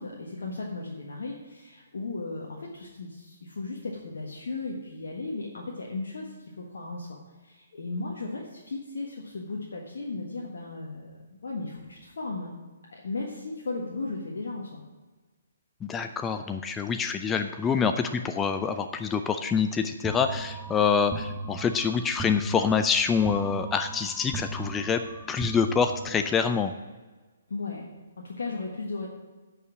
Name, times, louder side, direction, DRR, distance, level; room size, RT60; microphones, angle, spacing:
voice 1, 0.0-7.2 7.4-12.5 12.9-14.8 27.5-27.9 28.2-29.1, left 3 dB, 65° left, -2 dB, 1.5 m, -36 dB
voice 2, 15.8-25.0 25.3-26.7, left 6 dB, 15° left, 8 dB, 0.4 m, -26 dB
sound 1, 20.0-26.4, right 3 dB, 10° right, 1.0 m, -38 dB
9.3 x 5.6 x 7.2 m, 1.3 s
figure-of-eight pair, 130°, 0 cm